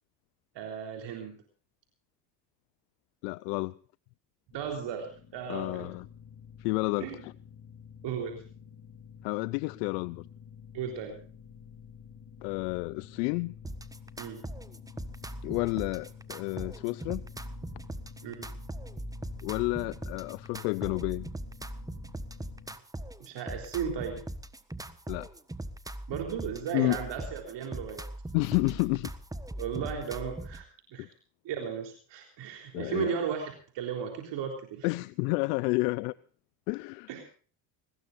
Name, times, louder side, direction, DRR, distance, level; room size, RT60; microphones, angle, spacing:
voice 1, 0.5-1.4 4.5-5.9 7.0-7.2 8.0-8.4 10.7-11.2 14.2-14.4 18.2-18.5 23.2-24.2 26.1-28.1 29.6-30.6 30.9-31.1 31.4-34.9 37.1-37.2, right 7 dB, 65° right, 3.9 m, -35 dB
voice 2, 3.2-3.7 5.5-6.1 6.6-7.3 9.2-10.3 12.4-13.5 15.4-17.2 19.4-21.3 25.1-25.3 26.7-27.0 28.3-29.1 31.0-31.1 32.7-33.2 34.8-36.1 36.7-37.1, left 25 dB, 85° left, 0.6 m, -30 dB
sound 1, 4.5-22.8, left 7 dB, 45° left, 2.6 m, -50 dB
sound 2, 13.6-30.6, right 1 dB, 5° right, 1.3 m, -40 dB
22.0 x 20.0 x 2.6 m
supercardioid pair, 80°, 47 cm